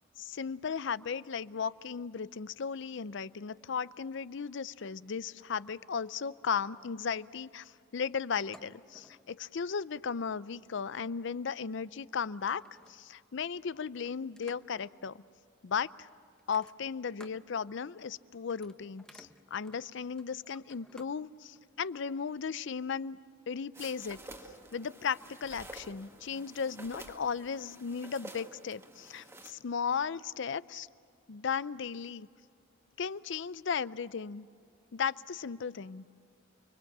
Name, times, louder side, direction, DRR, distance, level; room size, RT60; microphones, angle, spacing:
voice 1, 0.2-12.6 12.9-15.2 15.6-16.1 16.5-23.2 23.5-24.2 24.7-30.9 31.3-32.3 33.0-34.5 34.9-36.0, left 6 dB, 65° left, 17 dB, 0.5 m, -36 dB
sound 1, 8.5-9.3 10.4-10.7 11.8-11.9 12.3-13.2 13.9-14.9 16.4-17.5 17.8-18.1 18.4-21.2 21.5-21.6, left 1 dB, 5° left, 0.9 m, -58 dB
sound 2, 23.7-29.5, right 1 dB, 15° right, 1.7 m, -50 dB
30.0 x 22.5 x 7.3 m, 2.4 s
head